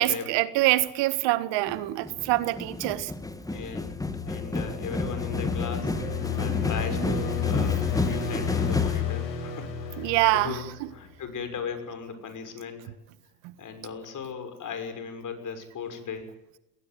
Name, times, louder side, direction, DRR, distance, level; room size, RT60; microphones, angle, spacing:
voice 1, 0.0-3.1 10.0-10.9 13.4-13.5, right 18 dB, 60° right, 14 dB, 1.6 m, -25 dB
sound 1, 1.7-9.0, left 2 dB, 5° left, 1.8 m, -31 dB
voice 2, 3.5-4.0 4.2-12.8 13.6-16.3, left 6 dB, 40° left, 8 dB, 6.3 m, -38 dB
sound 2, 3.7-11.0, left 8 dB, 85° left, 7.3 m, -31 dB
20.5 x 18.0 x 9.3 m, 0.93 s
hypercardioid pair, 90°, 49 cm